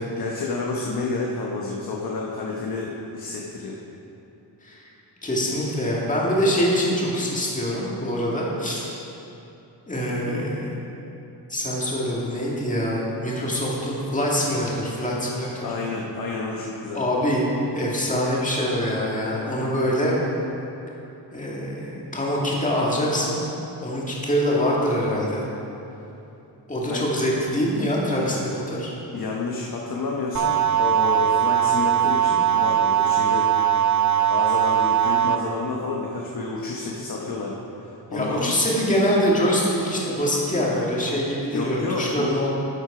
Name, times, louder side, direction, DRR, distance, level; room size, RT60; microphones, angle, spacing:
voice 1, 0.2-3.8 15.6-17.0 26.8-27.1 28.1-28.4 29.1-33.5 34.3-38.5 41.5-42.4, left 3 dB, 55° left, -2 dB, 1.0 m, -30 dB
voice 2, 5.2-8.9 9.9-10.7 11.5-15.7 16.9-17.5 17.7-20.1 21.3-23.4 23.8-25.5 26.7-28.9 38.1-42.5, equal, 15° left, -5 dB, 1.9 m, -24 dB
sound 1, 30.3-35.3, right 10 dB, 45° right, 0.5 m, -20 dB
12.0 x 8.0 x 4.9 m, 2.9 s
wide cardioid pair, 170°, 43 cm